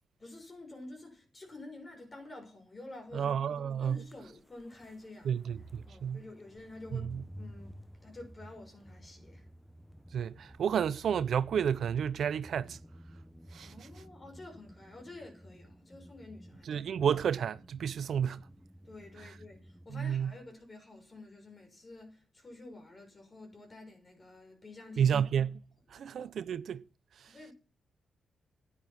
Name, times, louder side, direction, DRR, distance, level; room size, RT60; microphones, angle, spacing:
voice 1, 0.2-5.4 5.8-9.5 13.6-16.8 18.8-25.2 25.9-26.1 27.3-27.5, left 2 dB, 35° left, 6.3 m, -50 dB
voice 2, 3.1-4.1 5.2-6.2 6.9-7.2 10.1-12.8 13.5-13.9 16.7-18.5 19.9-20.4 25.0-25.6 25.9-26.8 27.2-27.3, right 8 dB, 75° right, 0.7 m, -31 dB
sound 1, 4.0-19.9, equal, 5° left, 1.0 m, -53 dB
11.0 x 10.0 x 5.9 m
cardioid pair, 65°, 0 cm